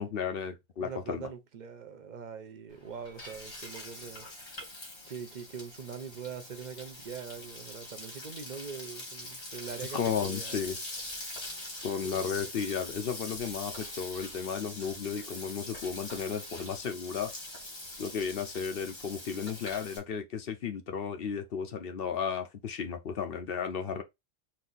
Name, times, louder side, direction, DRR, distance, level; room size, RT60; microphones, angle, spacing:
voice 1, 0.0-1.3 9.9-10.8 11.8-17.3 18.0-24.0, left 7 dB, 60° left, 0.9 m, -34 dB
voice 2, 0.8-4.3 5.1-10.6 12.0-12.5, right 6 dB, 45° right, 0.8 m, -43 dB
Frying (food), 2.7-20.0, left 1 dB, 90° left, 2.3 m, -43 dB
4.5 x 2.7 x 3.8 m
omnidirectional pair, 1.2 m